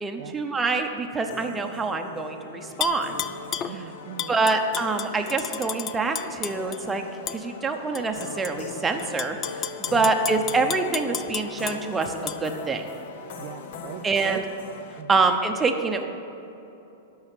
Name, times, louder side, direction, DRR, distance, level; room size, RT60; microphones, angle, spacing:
voice 1, 0.0-3.2 3.7-3.8 4.3-7.0 7.3-12.9 14.0-14.4 15.1-16.1, right 3 dB, 10° right, 4 dB, 0.8 m, -26 dB
sound 1, 1.3-15.0, left 5 dB, 55° left, 1.0 m, -40 dB
Tap / Glass, 2.8-3.7 4.2-6.8 7.3-7.4 7.9-8.5 9.0-11.8 12.3-12.4, left 10 dB, 25° left, 0.4 m, -32 dB
voice 2, 3.6-4.4 9.9-10.1 13.4-14.4 15.0-15.2, right 13 dB, 40° right, 8 dB, 0.3 m, -39 dB
12.5 x 5.6 x 9.0 m, 2.9 s
supercardioid pair, 155°, 0 cm